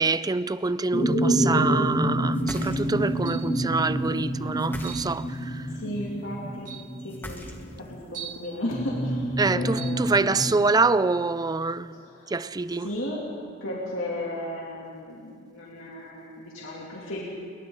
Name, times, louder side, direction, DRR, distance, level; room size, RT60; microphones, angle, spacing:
voice 1, 0.0-5.7 9.4-11.9 12.3-12.9, right 3 dB, 20° right, 0.4 m, -25 dB
sound 1, 0.9-7.8 8.7-10.5, right 1 dB, 45° left, 3.2 m, -27 dB
sound 2, 2.3-3.2 4.6-5.4 7.1-7.9, left 1 dB, 10° left, 1.7 m, -40 dB
sound 3, 3.3-3.6 4.8-5.1 6.0-6.1 6.6-6.9 8.1-8.5 9.7-10.0, right 10 dB, 40° right, 2.1 m, -40 dB
voice 2, 5.7-10.5 11.9-12.3 12.7-13.3 13.6-17.2, left 1 dB, 80° left, 2.9 m, -35 dB
29.5 x 22.0 x 4.0 m
head